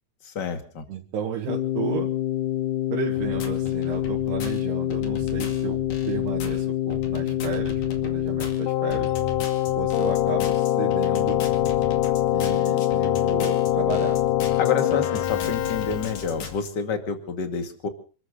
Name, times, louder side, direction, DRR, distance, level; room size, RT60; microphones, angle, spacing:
voice 1, 0.2-0.8 14.6-17.9, left 5 dB, 35° left, 7 dB, 1.9 m, -29 dB
voice 2, 0.9-2.1 2.9-5.8 6.1-9.1 9.8-11.4 12.3-14.2, right 8 dB, 75° right, -2 dB, 4.0 m, -33 dB
Keyboard (musical), 1.5-16.5, left 13 dB, 80° left, 1.9 m, -25 dB
sound 1, 3.2-16.7, left 4 dB, 55° left, 3.6 m, -37 dB
28.0 x 13.5 x 3.8 m, 0.39 s
omnidirectional pair, 4.9 m